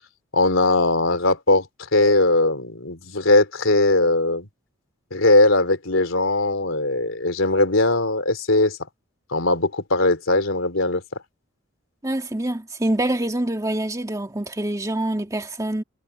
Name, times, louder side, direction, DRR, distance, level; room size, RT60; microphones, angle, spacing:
voice 1, 0.3-1.7 1.9-4.5 5.1-8.8 9.3-11.0, left 2 dB, 75° left, 3.4 m, -19 dB
voice 2, 12.0-15.8, right 1 dB, 15° right, 2.0 m, -25 dB
head